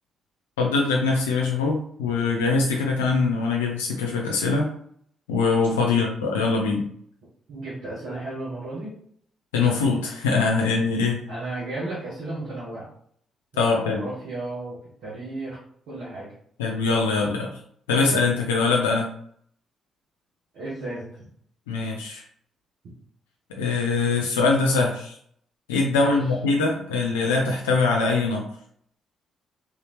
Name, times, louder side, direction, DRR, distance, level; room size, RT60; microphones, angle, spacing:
voice 1, 0.6-4.7 5.3-6.9 9.5-11.2 13.6-14.1 16.6-17.5 17.9-19.1 21.7-22.2 23.6-25.1 25.7-28.5, left 4 dB, 85° left, 0 dB, 0.4 m, -22 dB
voice 2, 7.5-8.9 11.3-12.9 13.5-14.7 15.0-15.6 15.9-16.3 20.5-21.3 25.9-26.3, right 2 dB, 70° right, -9 dB, 1.3 m, -34 dB
3.4 x 2.8 x 3.1 m, 0.64 s
hypercardioid pair, 40°, 0 cm